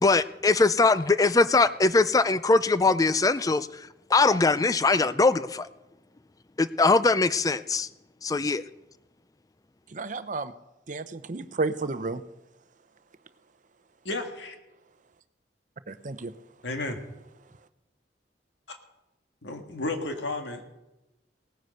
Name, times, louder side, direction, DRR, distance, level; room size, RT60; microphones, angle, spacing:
voice 1, 0.0-3.7 4.1-5.7 6.6-7.9 8.2-8.6, left 3 dB, 20° left, 15 dB, 0.4 m, -21 dB
voice 2, 9.9-10.5 10.9-12.2 15.9-16.3, right 3 dB, 45° right, 12 dB, 0.7 m, -32 dB
voice 3, 14.1-14.6 16.6-17.0 18.7-18.8 19.4-20.6, left 2 dB, 80° left, 5 dB, 1.8 m, -32 dB
18.0 x 9.4 x 6.5 m, 0.98 s
head